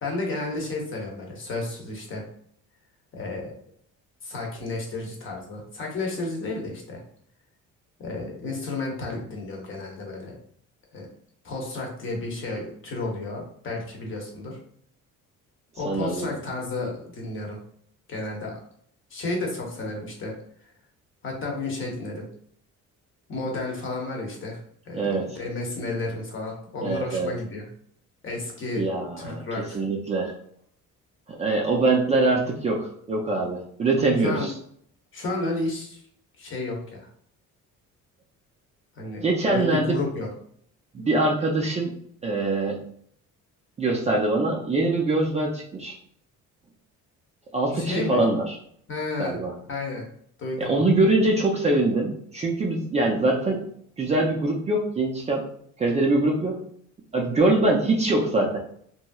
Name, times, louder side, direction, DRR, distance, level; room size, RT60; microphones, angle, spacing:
voice 1, 0.0-2.2 3.1-3.5 4.2-7.0 8.0-10.4 10.9-11.1 11.4-14.6 15.8-17.6 18.1-18.6 19.1-20.3 21.2-22.2 23.3-24.6 24.9-25.1 25.4-27.7 28.2-28.9 29.2-29.8 34.2-34.5 35.1-36.0 36.4-37.1 39.0-40.3 41.0-41.1 47.7-48.2 48.9-49.4 49.7-50.0 50.4-50.9, left 2 dB, 40° left, 0 dB, 0.9 m, -32 dB
voice 2, 15.8-16.3 24.9-25.4 26.8-27.3 28.8-29.4 29.7-30.3 31.4-34.5 39.2-40.0 40.9-41.9 42.2-42.8 43.8-46.0 47.5-48.6 49.2-49.5 50.6-53.6 54.0-55.5 55.8-56.6 57.1-58.6, right 2 dB, 20° right, -2 dB, 0.4 m, -23 dB
3.0 x 2.7 x 2.3 m, 0.65 s
cardioid pair, 140°, 30 cm